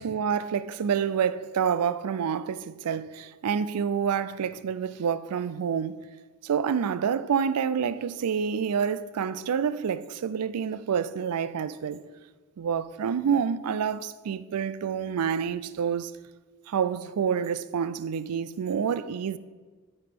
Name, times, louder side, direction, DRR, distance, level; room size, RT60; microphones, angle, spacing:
voice 1, 0.0-6.0 6.4-12.0 12.6-16.1 16.7-19.4, right 7 dB, 85° right, 0.4 m, -28 dB
12.0 x 5.8 x 3.6 m
head